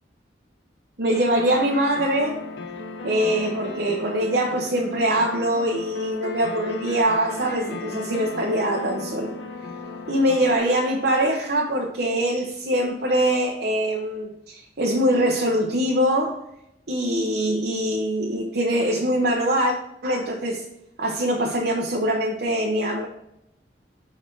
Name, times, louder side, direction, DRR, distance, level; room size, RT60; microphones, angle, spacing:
voice 1, 1.0-2.4 3.0-9.3 10.1-16.4 16.9-19.7 20.0-20.6 21.0-23.1, right 1 dB, 60° right, 0 dB, 0.9 m, -23 dB
sound 1, 1.1-10.6, left 3 dB, 80° left, 1.0 m, -36 dB
6.0 x 4.5 x 4.5 m, 0.82 s
head